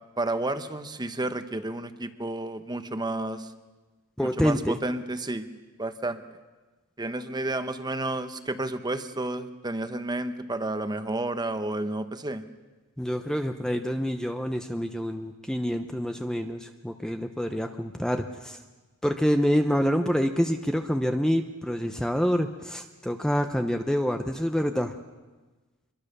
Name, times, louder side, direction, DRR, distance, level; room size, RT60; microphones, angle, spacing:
voice 1, 0.2-3.5 4.2-5.5 5.8-6.2 7.0-12.4, right 2 dB, 20° right, 10 dB, 1.1 m, -31 dB
voice 2, 4.2-4.8 13.0-18.6 19.0-25.0, equal, 5° left, 6 dB, 0.8 m, -27 dB
25.0 x 22.5 x 6.8 m, 1.2 s
head